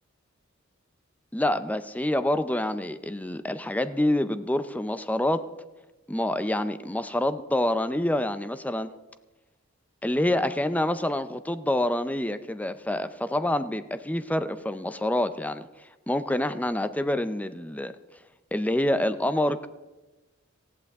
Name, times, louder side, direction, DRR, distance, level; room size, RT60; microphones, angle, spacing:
voice 1, 1.3-5.5 6.1-8.9 10.0-15.7 16.1-17.9 18.5-19.7, left 1 dB, 10° left, 11 dB, 0.5 m, -27 dB
19.0 x 15.0 x 3.6 m, 1.1 s
head